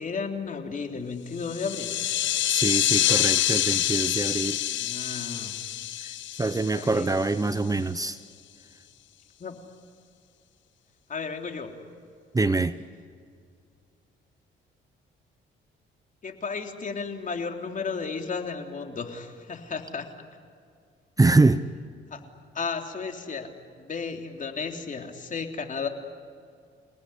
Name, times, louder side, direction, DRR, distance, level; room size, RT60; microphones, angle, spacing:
voice 1, 0.0-2.0 4.4-5.5 6.7-7.1 9.4-9.6 11.1-11.7 16.2-20.1 22.1-22.2 22.5-25.9, left 5 dB, 40° left, 4 dB, 3.4 m, -34 dB
sound 1, 1.4-7.5, left 13 dB, 70° left, 0.9 m, -26 dB
voice 2, 2.5-4.6 6.0-6.1 6.4-8.2 12.3-12.8 21.2-21.7, right 3 dB, 15° right, 13 dB, 0.8 m, -24 dB
29.0 x 19.0 x 10.0 m, 2.3 s
cardioid pair, 90°, 20 cm